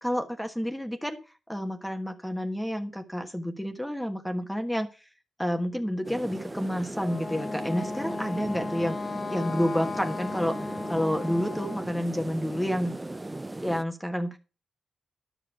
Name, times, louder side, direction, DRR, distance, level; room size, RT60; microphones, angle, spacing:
voice 1, 0.0-1.2 1.5-4.9 5.4-12.9 13.6-14.4, equal, 5° left, 6 dB, 1.3 m, -29 dB
sound 1, 6.0-13.8, right 2 dB, 15° right, 0.6 m, -38 dB
Wind instrument woodwind instrument, 7.0-11.9, left 4 dB, 35° left, 1.2 m, -36 dB
11.0 x 6.3 x 6.0 m, 0.33 s
cardioid pair, 75°, 0 cm